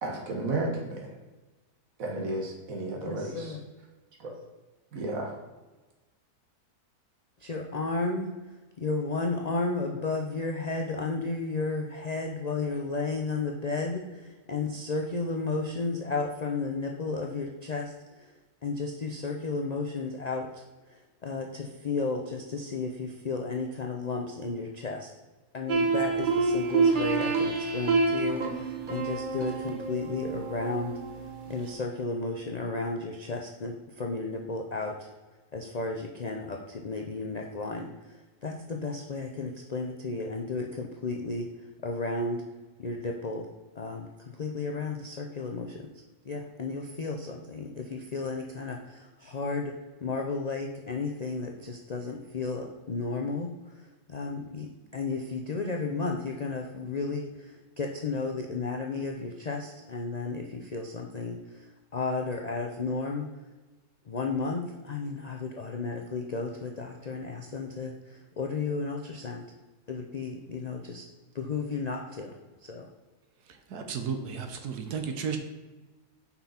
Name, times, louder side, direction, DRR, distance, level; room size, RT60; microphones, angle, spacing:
voice 1, 0.0-1.1 2.0-3.5 4.2-4.3 4.9-5.3, right 2 dB, 60° right, 0 dB, 1.8 m, -33 dB
voice 2, 2.9-3.6 7.4-8.3 8.8-18.3 18.6-20.6 20.9-25.1 25.5-31.0 31.5-35.1 35.5-41.5 41.8-42.4 42.8-43.5 43.8-45.9 46.2-63.3 64.1-69.4 69.9-71.0 71.3-72.9, left 3 dB, 85° left, 2 dB, 0.3 m, -33 dB
sound 1, 25.7-31.7, right 4 dB, 40° right, 0.8 m, -28 dB
voice 3, 73.7-75.4, right 6 dB, 85° right, 6 dB, 1.4 m, -33 dB
5.9 x 5.6 x 4.2 m, 1.2 s
omnidirectional pair, 1.6 m